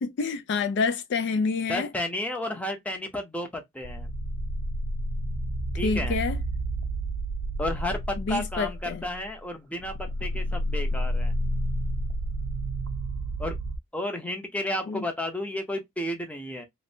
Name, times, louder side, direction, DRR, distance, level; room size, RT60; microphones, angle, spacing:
voice 1, 0.0-1.9 5.8-6.4 8.2-9.0 14.9-15.0, left 4 dB, 55° left, 0.3 m, -27 dB
voice 2, 1.7-4.1 5.8-6.2 7.6-11.3 13.4-13.6 13.9-16.6, left 1 dB, 5° left, 0.6 m, -32 dB
sound 1, 3.8-9.4 9.8-13.8, right 1 dB, 60° right, 0.4 m, -30 dB
3.1 x 2.6 x 2.6 m
head